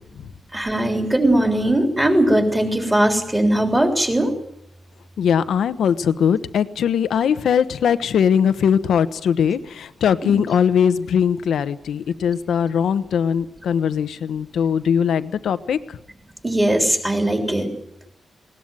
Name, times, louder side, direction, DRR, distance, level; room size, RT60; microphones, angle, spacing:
voice 1, 0.5-4.3 10.2-10.4 16.4-17.8, right 1 dB, 10° right, 4 dB, 3.5 m, -19 dB
voice 2, 5.2-16.0, left 7 dB, 90° left, 13 dB, 1.1 m, -20 dB
20.5 x 19.0 x 9.0 m, 0.77 s
wide cardioid pair, 170°, 0 cm